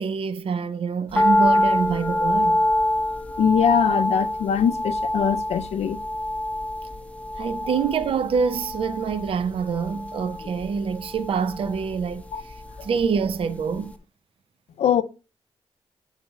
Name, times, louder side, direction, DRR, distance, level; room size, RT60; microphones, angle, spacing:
voice 1, 0.0-2.6 7.4-13.9, right 6 dB, 60° right, 0.5 m, -26 dB
sound 1, 1.1-13.4 13.7-13.8, left 1 dB, 10° left, 0.6 m, -26 dB
voice 2, 3.4-6.0 12.3-12.4 14.8-15.0, left 8 dB, 85° left, 0.5 m, -22 dB
7.9 x 4.1 x 4.5 m
cardioid pair, 100°, 11 cm